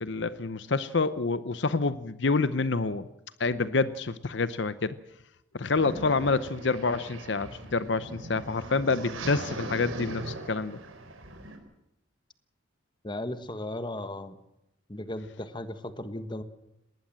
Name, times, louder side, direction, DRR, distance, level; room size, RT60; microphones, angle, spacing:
voice 1, 0.0-3.1 3.4-5.0 5.5-10.8, left 3 dB, 60° left, 14 dB, 0.7 m, -27 dB
sound 1, 5.7-11.6, right 2 dB, 85° right, 4.4 m, -40 dB
voice 2, 13.0-14.4 14.9-16.4, left 1 dB, 25° left, 11 dB, 1.4 m, -36 dB
20.0 x 19.0 x 7.5 m, 0.86 s
head